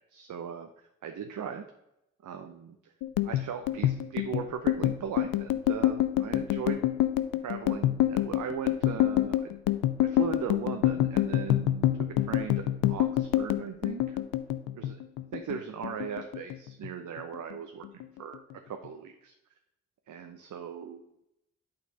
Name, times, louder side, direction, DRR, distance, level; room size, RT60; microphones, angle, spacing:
voice 1, 0.1-0.7 1.0-1.7 2.2-2.9 3.2-6.9 7.4-9.5 10.0-11.9 12.2-12.6 12.9-14.2 14.7-15.0 15.3-19.3 20.1-21.1, right 7 dB, 65° right, 6 dB, 0.7 m, -38 dB
sound 1, 3.0-15.6 15.8-16.9 17.2-17.5 17.8-18.5, left 13 dB, 85° left, 0.5 m, -27 dB
8.5 x 4.3 x 5.1 m, 0.86 s
supercardioid pair, 45°, 33 cm